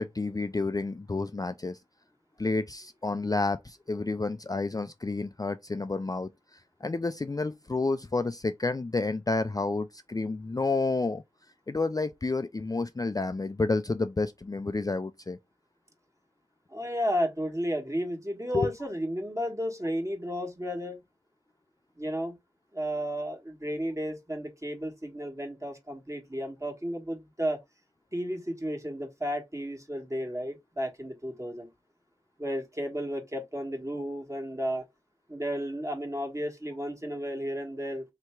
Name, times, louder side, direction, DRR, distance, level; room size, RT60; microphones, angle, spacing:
voice 1, 0.0-1.8 2.4-11.2 11.7-15.4 18.5-18.7, left 3 dB, 30° left, 0.3 m, -30 dB
voice 2, 16.7-21.0 22.0-22.4 22.7-27.6 28.1-31.7 32.4-34.8 35.3-38.0, equal, 25° right, 1.5 m, -33 dB
3.3 x 3.0 x 4.5 m
wide cardioid pair, 45°, 13 cm